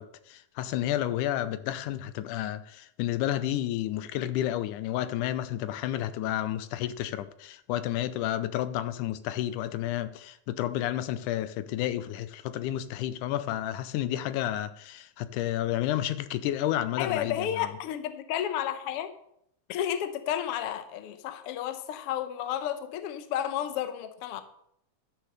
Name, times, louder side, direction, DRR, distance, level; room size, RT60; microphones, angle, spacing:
voice 1, 0.0-17.7, left 12 dB, 90° left, 2.1 m, -31 dB
voice 2, 17.0-19.1 19.7-24.4, left 10 dB, 70° left, 1.4 m, -32 dB
12.0 x 6.4 x 6.5 m
omnidirectional pair, 3.6 m